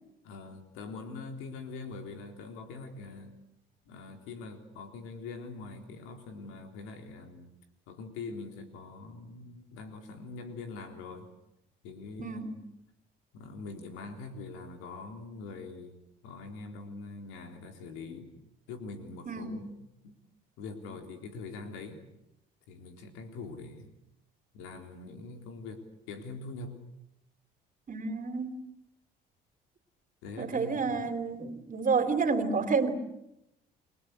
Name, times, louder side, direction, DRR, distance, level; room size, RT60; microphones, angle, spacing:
voice 1, 0.2-3.3 3.9-7.5 7.9-11.3 11.8-12.6 13.3-16.0 16.2-18.3 18.7-19.7 20.0-20.2 20.6-22.0 22.7-23.9 24.5-26.8 30.2-31.1, left 3 dB, 90° left, 5 dB, 3.7 m, -43 dB
voice 2, 19.3-19.6 27.9-28.6 30.4-33.0, right 4 dB, 40° right, 10 dB, 3.3 m, -30 dB
29.5 x 20.5 x 8.1 m, 0.85 s
supercardioid pair, 70°, 21 cm